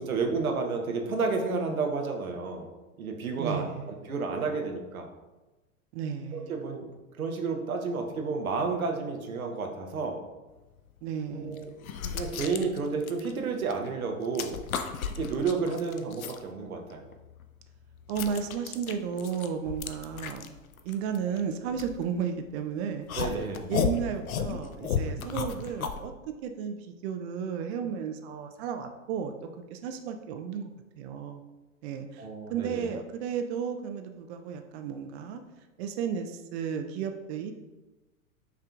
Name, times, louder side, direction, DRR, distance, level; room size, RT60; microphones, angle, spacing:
voice 1, 0.0-2.7 3.0-5.1 6.3-6.9 7.2-10.2 11.3-11.7 12.1-14.6 15.2-17.0 23.2-23.7 32.2-32.9, right 4 dB, 85° right, 3 dB, 0.8 m, -31 dB
voice 2, 3.4-3.9 5.9-6.6 11.0-11.8 18.1-20.5 20.8-23.4 23.7-29.3 29.7-30.7 31.0-31.4 31.8-35.4 35.8-37.5, right 7 dB, 50° right, 6 dB, 0.5 m, -33 dB
sound 1, 10.8-10.9 11.6-13.9 14.2-16.4 16.9-22.5 23.1-26.0, left 7 dB, 85° left, 0.5 m, -34 dB
5.7 x 3.7 x 2.3 m, 1.1 s
hypercardioid pair, 100°, 41 cm